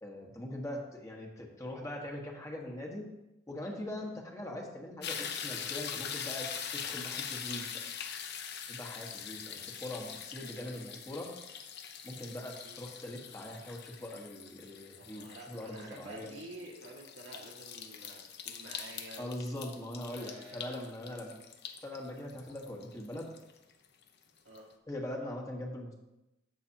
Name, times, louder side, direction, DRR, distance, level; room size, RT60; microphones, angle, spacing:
voice 1, 0.0-3.1 3.5-7.6 8.7-11.3 12.0-16.3 19.2-21.4 21.8-23.3 24.9-25.9, left 1 dB, 15° left, -1 dB, 1.4 m, -41 dB
sound 1, 5.0-24.1 24.5-24.6, left 8 dB, 60° left, 0.8 m, -43 dB
voice 2, 9.4-10.0 12.6-12.8 14.9-19.3 20.1-20.8 24.5-24.7, right 1 dB, 70° right, -2 dB, 1.8 m, -50 dB
14.0 x 5.9 x 2.9 m, 0.94 s
head